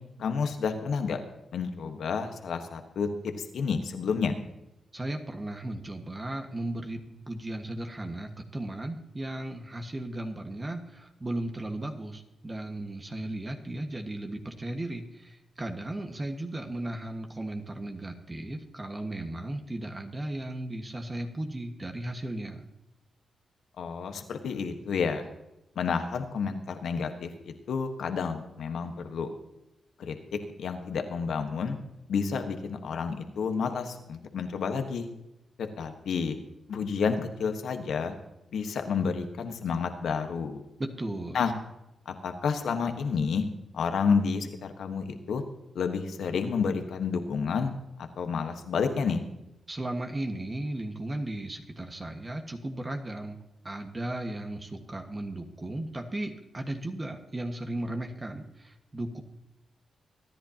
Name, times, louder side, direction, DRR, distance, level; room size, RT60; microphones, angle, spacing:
voice 1, 0.2-1.2 1.5-4.3 23.8-25.2 25.8-29.3 30.0-31.8 32.1-35.1 35.6-36.3 36.7-38.1 38.5-40.6 41.3-41.5 42.1-43.4 43.7-45.4 45.7-47.7 48.0-49.2, left 5 dB, 80° left, 6 dB, 1.3 m, -30 dB
voice 2, 4.9-22.6 40.8-41.5 49.7-53.4 53.6-59.2, right 1 dB, 30° right, 4 dB, 1.5 m, -36 dB
23.5 x 10.5 x 2.9 m, 0.90 s
cardioid pair, 60°, 0 cm